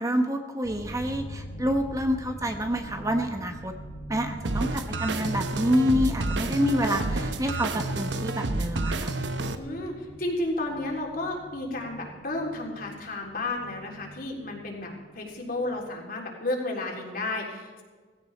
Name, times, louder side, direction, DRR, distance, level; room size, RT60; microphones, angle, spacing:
voice 1, 0.0-3.7 4.1-9.1, equal, 20° right, 5 dB, 1.0 m, -27 dB
sound 1, 0.6-15.8, equal, 90° left, 4.3 m, -44 dB
sound 2, 4.4-9.5, right 2 dB, 80° right, 1.0 m, -29 dB
voice 2, 9.6-9.9 10.2-17.8, left 2 dB, 55° left, -1 dB, 3.6 m, -32 dB
17.5 x 16.0 x 4.3 m, 1.5 s
head